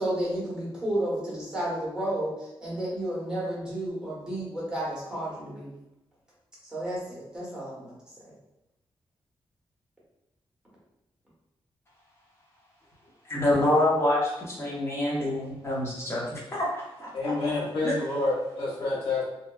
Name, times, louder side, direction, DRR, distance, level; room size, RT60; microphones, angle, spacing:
voice 1, 0.0-5.7 6.6-8.0 8.2-8.3, right 1 dB, 5° right, -7 dB, 1.1 m, -32 dB
voice 2, 13.2-17.3 17.8-17.9, left 1 dB, 25° left, -5 dB, 0.8 m, -26 dB
voice 3, 17.1-19.2, left 2 dB, 75° left, -5 dB, 1.1 m, -28 dB
2.8 x 2.2 x 2.2 m, 0.92 s
wide cardioid pair, 150°, 9 cm